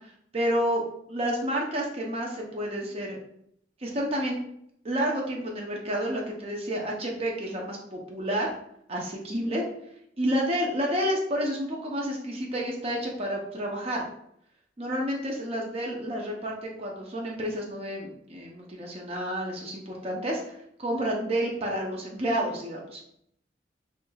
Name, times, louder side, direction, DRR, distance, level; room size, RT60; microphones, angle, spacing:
voice 1, 0.3-0.8 1.1-3.2 3.8-4.4 4.8-8.5 8.9-9.7 10.2-14.0 14.8-23.0, equal, 35° right, -1 dB, 0.5 m, -30 dB
3.2 x 3.2 x 2.2 m, 0.71 s
head